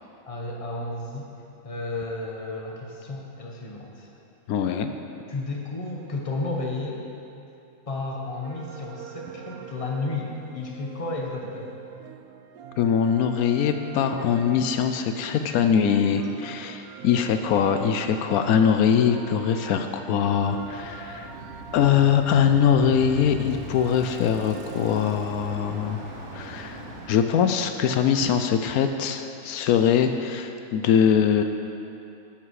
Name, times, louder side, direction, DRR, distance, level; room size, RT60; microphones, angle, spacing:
voice 1, 0.3-1.3 1.6-4.1 5.3-7.0 7.9-11.8, left 2 dB, 25° left, -1 dB, 1.1 m, -32 dB
voice 2, 4.5-4.9 12.8-21.4 21.7-26.0 26.3-31.4, left 8 dB, 85° left, 7 dB, 1.1 m, -22 dB
sound 1, 8.4-25.7, right 8 dB, 80° right, 1.0 m, -43 dB
Bicycle, 20.1-27.6, equal, 55° right, 1.5 m, -41 dB
9.8 x 8.9 x 4.8 m, 2.8 s
omnidirectional pair, 1.5 m